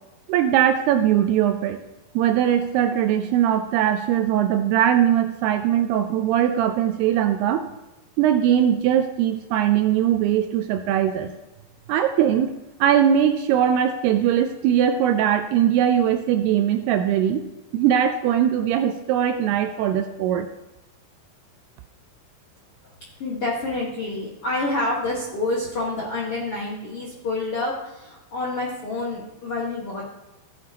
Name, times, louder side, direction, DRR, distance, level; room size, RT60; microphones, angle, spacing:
voice 1, 0.3-1.8 2.2-7.7 8.2-11.3 11.9-17.4 17.7-20.5, right 10 dB, 85° right, 7 dB, 2.4 m, -20 dB
voice 2, 23.2-30.0, left 2 dB, 65° left, -5 dB, 1.4 m, -28 dB
16.0 x 7.5 x 2.9 m, 1.0 s
omnidirectional pair, 5.0 m